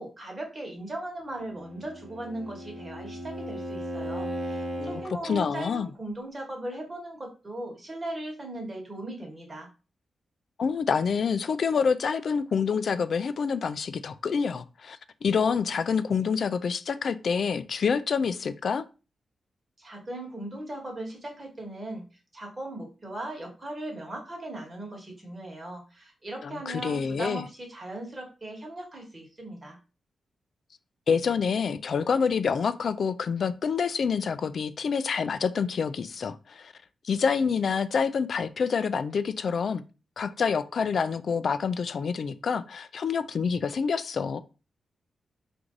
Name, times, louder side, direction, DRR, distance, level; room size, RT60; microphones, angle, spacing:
voice 1, 0.0-9.7 19.8-22.0 22.3-29.8, right 1 dB, 25° right, 1.4 m, -38 dB
Bowed string instrument, 1.4-5.1, equal, 45° right, 0.9 m, -36 dB
voice 2, 4.8-5.9 10.6-18.8 26.4-27.4 31.1-36.7 37.0-39.8 40.2-44.4, left 6 dB, 55° left, 0.4 m, -27 dB
4.6 x 2.6 x 3.8 m
wide cardioid pair, 140°, 0 cm